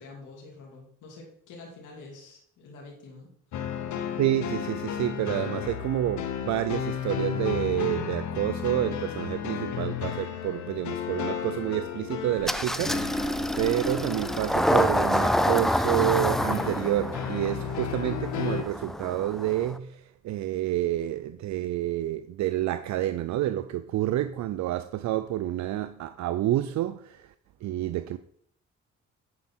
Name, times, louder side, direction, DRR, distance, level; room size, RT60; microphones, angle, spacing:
voice 1, 0.0-3.3 3.6-3.8, left 3 dB, 85° left, 2.6 m, -47 dB
sound 1, 3.5-18.6, left 8 dB, 70° left, 1.0 m, -34 dB
voice 2, 4.2-27.3 27.6-28.2, right 13 dB, 70° right, 0.5 m, -29 dB
Engine starting, 12.4-19.8, equal, ahead, 0.4 m, -27 dB
9.6 x 5.3 x 4.4 m
cardioid pair, 90°, 30 cm